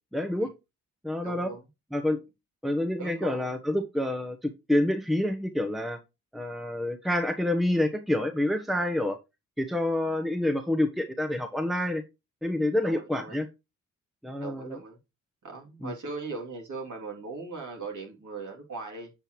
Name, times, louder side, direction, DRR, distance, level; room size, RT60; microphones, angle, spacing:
voice 1, 0.1-0.5 1.0-1.5 1.9-2.2 2.6-6.0 6.3-9.2 9.6-12.0 12.4-13.5 14.2-14.8 15.8-15.9, left 1 dB, ahead, 6 dB, 1.1 m, -28 dB
voice 2, 1.2-1.6 3.0-3.5 12.8-13.4 14.4-15.0 15.4-19.1, right 3 dB, 50° right, 0 dB, 3.0 m, -39 dB
7.8 x 6.8 x 3.1 m, 0.25 s
hypercardioid pair, 40°, 38 cm